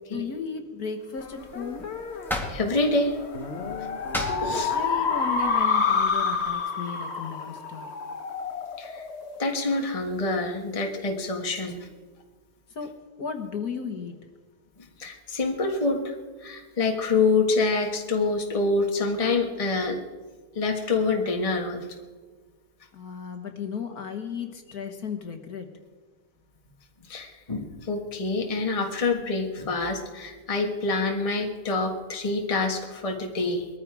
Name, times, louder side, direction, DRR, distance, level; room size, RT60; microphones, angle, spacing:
voice 1, 0.1-1.9 4.7-7.9 12.7-14.2 22.9-25.7, left 6 dB, 60° left, 5 dB, 1.7 m, -35 dB
sound 1, 1.2-10.0, left 5 dB, 40° left, 1.3 m, -29 dB
sound 2, 1.2-6.5, left 1 dB, ahead, 1.9 m, -38 dB
voice 2, 2.5-3.2 4.4-4.7 8.8-9.0 9.4-11.9 15.0-16.1 16.4-20.0 20.5-21.8 27.1-33.7, left 3 dB, 20° left, 2 dB, 1.4 m, -26 dB
20.5 x 14.0 x 4.8 m, 1.4 s
omnidirectional pair, 1.9 m